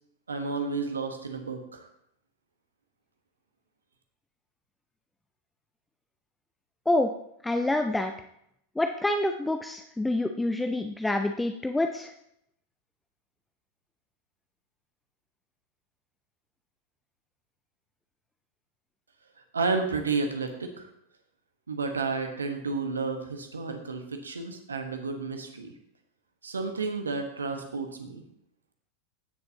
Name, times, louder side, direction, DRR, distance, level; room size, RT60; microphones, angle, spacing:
voice 1, 0.3-1.9 19.5-20.9 21.7-25.7 26.4-28.2, right 4 dB, 75° right, 5 dB, 1.3 m, -31 dB
voice 2, 7.4-8.1 8.8-12.1, left 1 dB, 5° left, 6 dB, 0.5 m, -27 dB
16.0 x 6.8 x 2.8 m, 0.75 s
figure-of-eight pair, 90°, 0 cm